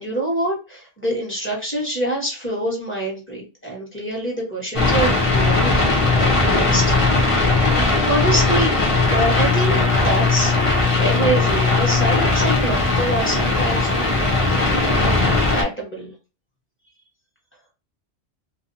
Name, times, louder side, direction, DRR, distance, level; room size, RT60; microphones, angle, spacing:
voice 1, 0.0-7.4 8.0-8.7 9.1-10.5 10.9-14.2 14.7-15.2 15.5-16.1, right 1 dB, 10° left, -3 dB, 1.1 m, -25 dB
sound 1, 4.7-15.6, left 3 dB, 35° left, 0.7 m, -18 dB
2.6 x 2.1 x 2.6 m, 0.30 s
omnidirectional pair, 1.3 m